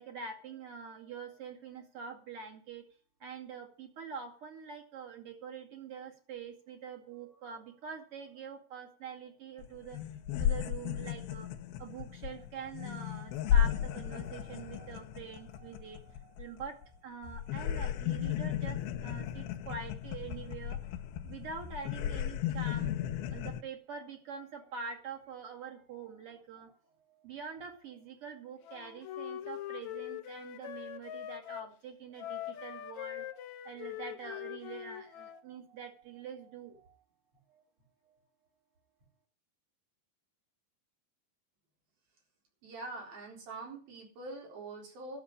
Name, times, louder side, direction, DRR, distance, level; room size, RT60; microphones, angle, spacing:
voice 1, 0.0-2.8 3.2-20.8 21.2-22.9 23.3-37.0 37.5-37.6 38.0-38.2, right 6 dB, 45° right, 4 dB, 2.7 m, -45 dB
sound 1, 9.6-9.7 9.9-16.9 17.2-23.6, left 10 dB, 90° left, 2.7 m, -34 dB
Wind instrument woodwind instrument, 28.6-31.7 32.2-35.4, left 12 dB, 70° left, 1.8 m, -42 dB
voice 2, 42.6-45.2, right 2 dB, 75° right, -1 dB, 5.8 m, -44 dB
12.5 x 7.1 x 9.6 m, 0.42 s
omnidirectional pair, 4.2 m